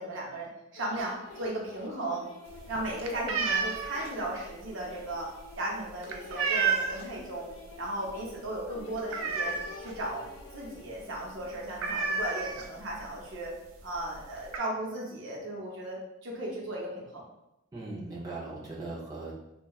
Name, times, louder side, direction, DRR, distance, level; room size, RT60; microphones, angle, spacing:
voice 1, 0.0-2.2 2.7-5.3 5.6-7.5 7.8-9.5 9.8-10.2 10.5-13.5 13.8-17.2, right 1 dB, 70° right, -3 dB, 0.7 m, -36 dB
sound 1, 0.8-11.3, left 4 dB, 85° left, 0.5 m, -50 dB
sound 2, 2.5-7.2 7.6-7.9 8.2-8.3 8.6-10.0 10.4-10.5 10.8-11.0 11.2-11.3 11.8-13.0 13.8-13.9 14.2-14.6, right 5 dB, 85° right, 0.4 m, -31 dB
voice 2, 17.7-19.3, right 2 dB, 20° right, -5 dB, 0.5 m, -39 dB
2.8 x 2.2 x 2.3 m, 0.88 s
head